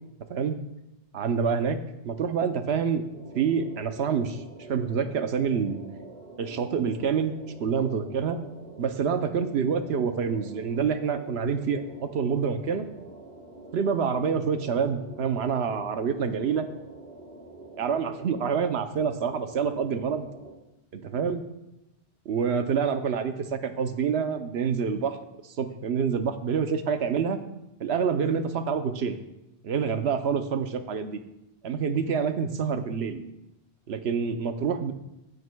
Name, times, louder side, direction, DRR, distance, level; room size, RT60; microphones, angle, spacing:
voice 1, 1.1-1.8 2.0-3.0 3.3-4.4 4.7-5.8 6.4-7.3 7.6-8.4 8.8-12.9 13.7-16.7 17.8-20.3 20.9-21.4 22.3-25.2 25.6-27.4 27.8-29.2 29.6-31.2 31.6-33.2 33.9-34.9, right 6 dB, 85° right, 8 dB, 1.0 m, -27 dB
sound 1, 3.1-20.5, right 2 dB, 65° right, 2.3 m, -46 dB
15.5 x 7.8 x 2.3 m, 0.89 s
omnidirectional pair, 1.1 m